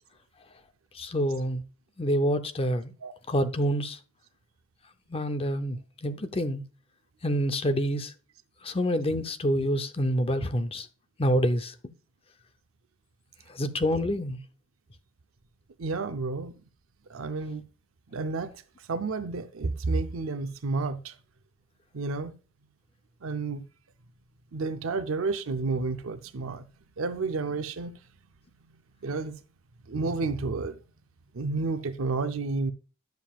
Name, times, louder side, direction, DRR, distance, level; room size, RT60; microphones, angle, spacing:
voice 1, 0.9-1.6 2.0-2.9 3.3-4.0 5.1-6.6 7.2-8.1 8.6-10.9 11.2-11.7 13.5-14.4, equal, 30° left, 0.7 m, -27 dB
voice 2, 15.8-16.5 17.1-17.6 18.1-21.2 21.9-22.3 23.2-23.6 24.5-26.7 27.0-28.0 29.0-29.4 29.9-30.8 31.3-32.7, right 3 dB, 85° right, 0.6 m, -31 dB
10.5 x 7.4 x 2.4 m
head